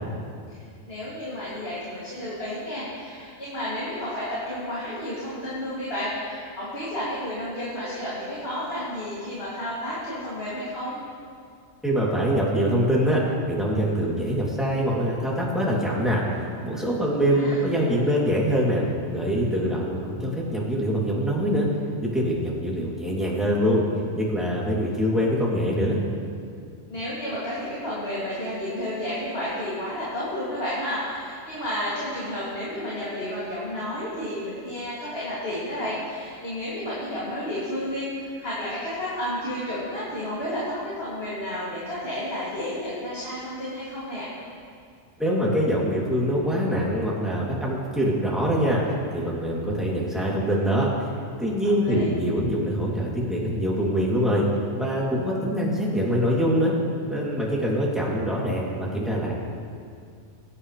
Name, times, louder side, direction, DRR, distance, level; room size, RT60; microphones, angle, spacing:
voice 1, 0.9-11.0 17.0-17.6 26.9-44.3 51.8-52.1, left 1 dB, 50° left, -10 dB, 3.1 m, -31 dB
voice 2, 11.8-16.2 16.6-21.7 22.0-23.9 24.2-26.0 45.2-51.1 51.4-54.5 54.8-56.7 57.0-59.3, equal, ahead, -6 dB, 2.9 m, -24 dB
23.5 x 10.0 x 3.4 m, 2.3 s
omnidirectional pair, 1.4 m